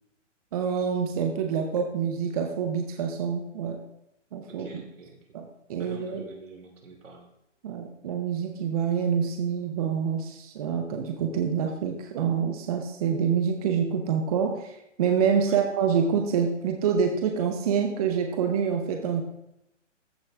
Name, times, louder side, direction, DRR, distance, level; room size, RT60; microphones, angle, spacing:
voice 1, 0.5-3.8 4.3-4.7 5.3-6.3 7.6-19.2, right 7 dB, 30° right, 4 dB, 0.8 m, -26 dB
voice 2, 4.5-5.2 5.8-7.3 15.5-15.6, right 3 dB, 80° right, 1 dB, 2.8 m, -47 dB
14.0 x 5.5 x 3.4 m, 0.83 s
hypercardioid pair, 150°, 37 cm